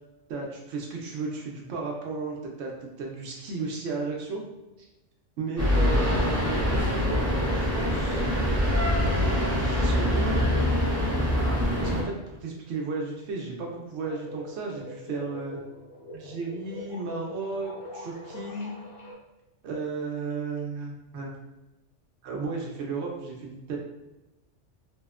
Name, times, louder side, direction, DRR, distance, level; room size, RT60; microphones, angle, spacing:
voice 1, 0.3-4.4 4.8-4.9 5.4-8.3 9.0-10.4 11.8-15.6 16.1-18.7 19.6-21.3 22.2-23.8, right 4 dB, 70° right, 0 dB, 0.8 m, -34 dB
sound 1, 5.6-12.0, left 1 dB, 20° right, 0.4 m, -24 dB
sound 2, 14.0-19.1, left 2 dB, 55° left, 0.7 m, -43 dB
2.8 x 2.0 x 2.3 m, 1.0 s
omnidirectional pair, 1.3 m